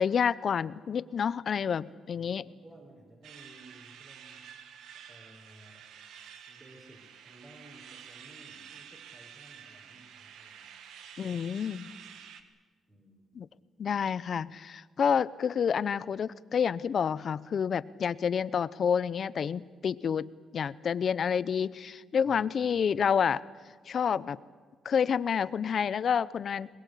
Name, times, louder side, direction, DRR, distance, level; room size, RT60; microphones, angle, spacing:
voice 1, 0.0-2.4 11.2-11.9 13.4-13.5 13.8-23.4 23.9-24.4 24.8-26.7, left 7 dB, 55° left, 18 dB, 0.7 m, -29 dB
voice 2, 2.1-5.9 6.5-10.7 11.2-11.4 12.0-12.2 12.9-13.3 22.2-22.4 22.9-23.0, right 1 dB, 25° right, -2 dB, 5.5 m, -56 dB
sound 1, 3.2-12.4, right 8 dB, 80° right, 1.7 m, -50 dB
22.5 x 21.0 x 8.4 m, 1.5 s
cardioid pair, 90°, 0 cm